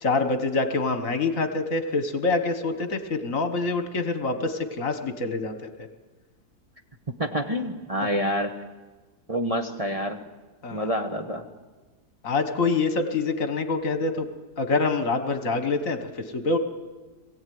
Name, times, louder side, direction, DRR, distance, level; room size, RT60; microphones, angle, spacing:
voice 1, 0.0-5.7 10.6-10.9 12.2-14.3 14.6-16.6, left 3 dB, 55° left, 8 dB, 1.7 m, -26 dB
voice 2, 7.2-8.5 9.3-10.2 10.7-11.5, equal, 25° right, 2 dB, 1.2 m, -27 dB
21.5 x 15.5 x 9.4 m, 1.3 s
omnidirectional pair, 1.7 m